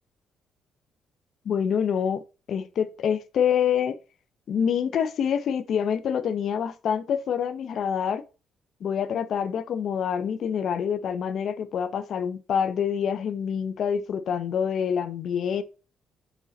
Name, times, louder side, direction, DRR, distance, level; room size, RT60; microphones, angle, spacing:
voice 1, 1.4-2.2 2.5-4.0 4.5-8.2 8.8-15.6, left 8 dB, 65° left, 0.6 m, -26 dB
6.0 x 4.1 x 4.1 m
cardioid pair, 90°, 0 cm